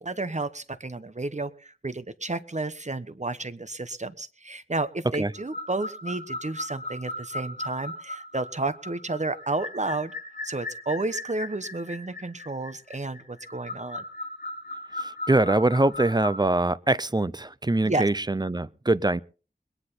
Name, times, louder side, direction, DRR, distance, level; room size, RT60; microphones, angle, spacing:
voice 1, 0.0-10.1 10.4-14.0 17.8-18.1, right 2 dB, 40° right, 1.1 m, -31 dB
sound 1, 5.3-16.5, left 1 dB, 50° left, 5.6 m, -37 dB
voice 2, 15.0-19.2, right 2 dB, 25° right, 0.6 m, -23 dB
21.5 x 10.0 x 4.1 m
wide cardioid pair, 60°, 18 cm